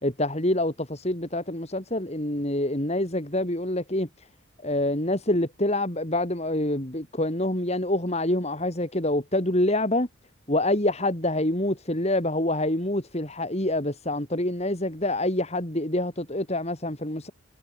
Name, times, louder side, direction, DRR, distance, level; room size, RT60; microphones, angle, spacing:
voice 1, 0.0-4.3 4.6-10.1 10.5-17.3, left 1 dB, 30° left, 3.1 m, -26 dB
head